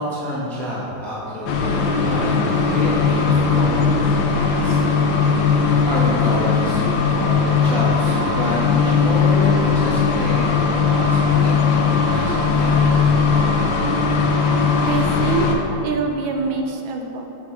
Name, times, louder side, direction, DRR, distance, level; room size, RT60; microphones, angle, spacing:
voice 1, 0.0-4.8 5.8-12.8, equal, ahead, -8 dB, 0.6 m, -28 dB
sound 1, 1.5-15.6, left 5 dB, 80° left, 1.4 m, -18 dB
voice 2, 14.8-15.5 15.8-17.3, right 4 dB, 80° right, 2 dB, 1.3 m, -24 dB
6.9 x 3.5 x 4.5 m, 2.9 s
omnidirectional pair, 2.2 m